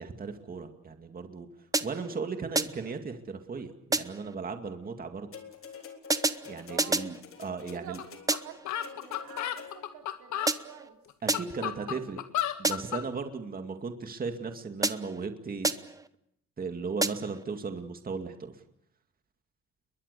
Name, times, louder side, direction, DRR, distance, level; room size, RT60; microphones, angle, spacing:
voice 1, 0.0-1.5 1.8-5.3 6.5-8.0 11.2-12.2 12.6-15.7 16.6-18.6, right 4 dB, 30° right, 6 dB, 2.3 m, -36 dB
sound 1, 1.7-2.2 2.6-3.0 3.9-4.3 6.1-7.2 8.3-8.7 10.5-10.9 11.3-11.7 12.6-13.1 14.8-15.3 15.6-16.1 17.0-17.4, right 3 dB, 10° right, 1.0 m, -30 dB
sound 2, 5.3-10.1 11.0-11.1, left 6 dB, 50° left, 3.6 m, -48 dB
voice 2, 6.7-7.1 7.7-11.0 11.6-12.0, right 10 dB, 90° right, 4 dB, 3.4 m, -48 dB
sound 3, 8.0-8.1 8.3-8.4 8.7-10.5 11.1-13.0, left 11 dB, 75° left, 1.9 m, -33 dB
29.5 x 22.5 x 6.9 m, 0.74 s
cardioid pair, 125°, 29 cm